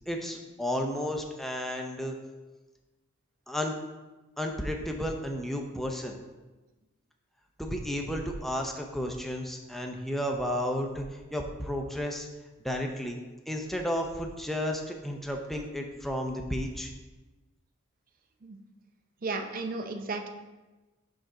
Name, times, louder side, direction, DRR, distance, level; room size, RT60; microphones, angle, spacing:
voice 1, 0.1-2.1 3.5-3.7 4.4-6.2 7.6-12.3 12.6-16.9, equal, ahead, 2 dB, 0.6 m, -32 dB
voice 2, 19.2-20.3, right 3 dB, 45° right, 6 dB, 0.6 m, -34 dB
5.8 x 5.3 x 3.7 m, 1.2 s
head